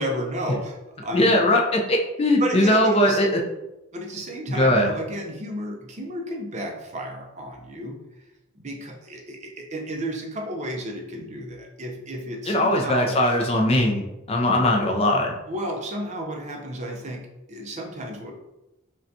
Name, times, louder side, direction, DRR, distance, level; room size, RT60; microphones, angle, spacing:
voice 1, 0.0-1.5 2.4-3.2 3.9-8.0 8.6-13.2 15.5-18.3, right 1 dB, 35° right, 1 dB, 0.5 m, -32 dB
voice 2, 1.1-3.4 4.5-4.9 12.5-15.3, left 1 dB, 30° left, 2 dB, 0.4 m, -20 dB
5.1 x 2.3 x 2.6 m, 0.94 s
head